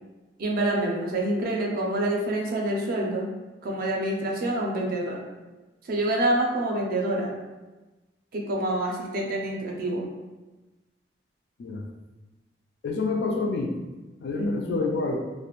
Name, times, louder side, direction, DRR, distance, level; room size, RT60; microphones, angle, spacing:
voice 1, 0.4-3.3 3.6-5.2 5.8-7.3 8.3-10.1 14.4-14.8, right 1 dB, 50° right, -1 dB, 0.4 m, -27 dB
voice 2, 12.8-13.8 14.2-15.2, left 3 dB, 65° left, 2 dB, 0.3 m, -28 dB
2.3 x 2.0 x 2.9 m, 1.2 s
head